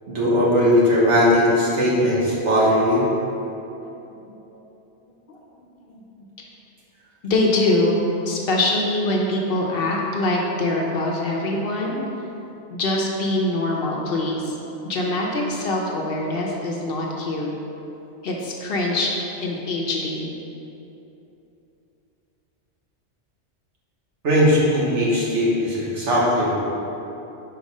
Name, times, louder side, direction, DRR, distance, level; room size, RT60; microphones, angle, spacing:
voice 1, 0.1-3.0 24.2-26.6, equal, 75° right, -6 dB, 1.6 m, -19 dB
voice 2, 5.3-6.0 7.2-12.0 12.7-14.6 14.8-17.5 18.2-19.1 19.4-20.3, left 2 dB, 55° left, -1 dB, 0.8 m, -24 dB
5.0 x 4.1 x 5.3 m, 3.0 s
omnidirectional pair, 1.2 m